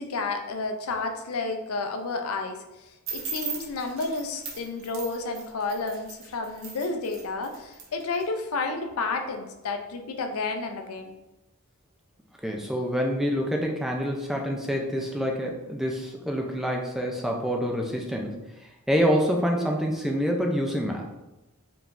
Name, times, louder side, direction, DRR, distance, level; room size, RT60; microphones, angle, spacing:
voice 1, 0.0-11.1, left 3 dB, 80° left, 5 dB, 0.5 m, -31 dB
sound 1, 3.1-8.2, right 5 dB, 60° right, 0.8 m, -38 dB
voice 2, 12.4-21.2, equal, ahead, 0 dB, 0.4 m, -27 dB
4.8 x 3.4 x 2.5 m, 1.0 s
head